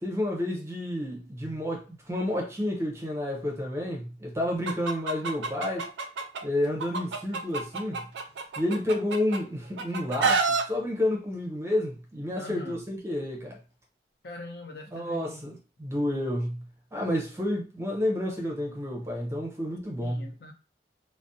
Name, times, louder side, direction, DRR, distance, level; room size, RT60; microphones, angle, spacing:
voice 1, 0.0-5.9 6.4-8.0 8.6-13.6 14.9-16.6 16.9-20.2, left 1 dB, 15° right, 0.5 m, -30 dB
Chicken rooster, 4.7-6.4 6.8-9.4 9.8-10.6, right 4 dB, 85° right, 0.4 m, -28 dB
voice 2, 12.4-12.8 14.2-15.4 20.0-20.5, left 3 dB, 60° left, 0.5 m, -42 dB
2.4 x 2.0 x 2.6 m
head